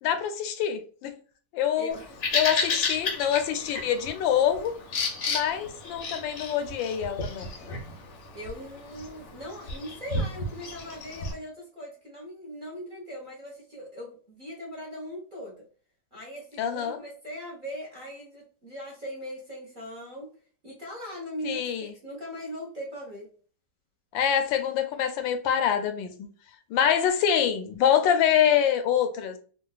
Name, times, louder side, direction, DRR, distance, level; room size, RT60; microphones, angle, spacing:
voice 1, 0.0-1.1 1.5-2.0 2.3-4.8 5.3-7.5 16.6-17.0 21.4-21.9 24.1-26.3 26.7-29.4, left 9 dB, 85° left, 1.3 m, -25 dB
voice 2, 1.8-2.1 8.3-15.6 16.1-20.3 20.6-23.3, equal, 35° right, 0.9 m, -40 dB
Bird vocalization bird call bird song, 1.9-11.3, left 3 dB, 55° left, 0.8 m, -33 dB
3.8 x 2.2 x 2.3 m
omnidirectional pair, 2.0 m